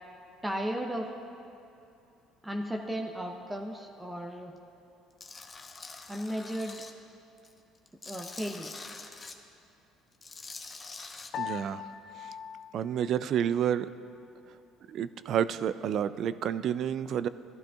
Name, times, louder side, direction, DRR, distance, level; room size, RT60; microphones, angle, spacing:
voice 1, 0.4-1.1 2.4-4.5 6.1-6.8 8.1-8.9, equal, 15° right, 3 dB, 0.7 m, -35 dB
Tools, 5.2-6.9 7.4-9.3 10.1-11.3, left 3 dB, 30° left, 0.8 m, -45 dB
Piano, 11.3-13.9, left 8 dB, 55° left, 0.5 m, -41 dB
voice 2, 11.4-11.8 12.7-13.9 14.9-17.3, right 9 dB, 60° right, 14 dB, 0.3 m, -29 dB
15.0 x 11.5 x 2.4 m, 2.6 s
supercardioid pair, 75°, 0 cm